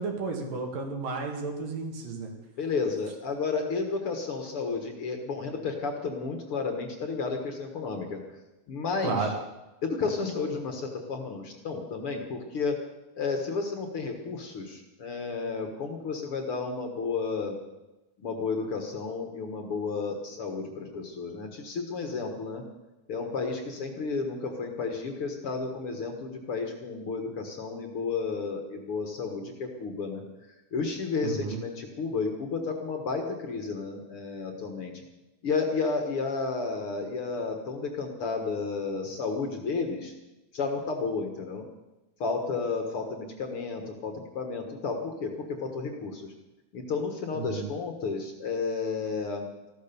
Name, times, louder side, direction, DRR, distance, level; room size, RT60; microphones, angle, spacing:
voice 1, 0.0-2.3 9.0-9.3 31.2-31.6 47.3-47.7, right 4 dB, 75° right, 2 dB, 3.8 m, -32 dB
voice 2, 2.6-8.2 8.7-9.3 9.8-12.8 13.2-17.6 18.2-22.6 23.1-30.2 30.7-34.9 35.4-40.1 40.5-41.6 42.2-46.3 46.7-49.5, left 4 dB, 50° left, 4 dB, 2.0 m, -32 dB
14.5 x 13.0 x 6.9 m, 1.0 s
omnidirectional pair, 3.9 m